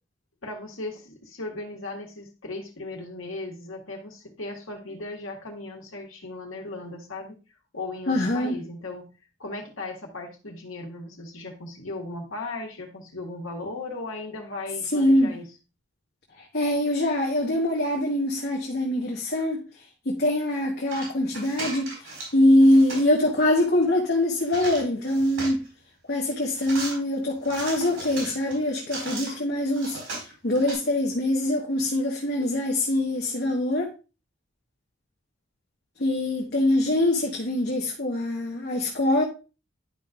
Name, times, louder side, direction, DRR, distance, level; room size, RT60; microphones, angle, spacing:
voice 1, 0.4-7.4 7.7-9.1 9.4-15.5, left 2 dB, 80° left, 1.6 m, -37 dB
voice 2, 8.1-8.6 14.9-15.3 16.4-19.6 20.0-25.6 26.1-30.0 30.4-33.9 36.0-39.2, left 1 dB, 50° left, 1.1 m, -23 dB
sound 1, 20.9-22.3 22.6-23.1 24.4-25.7 26.5-26.9 27.4-29.3 29.7-30.7, right 2 dB, 85° right, 4.5 m, -36 dB
11.0 x 5.2 x 2.4 m
head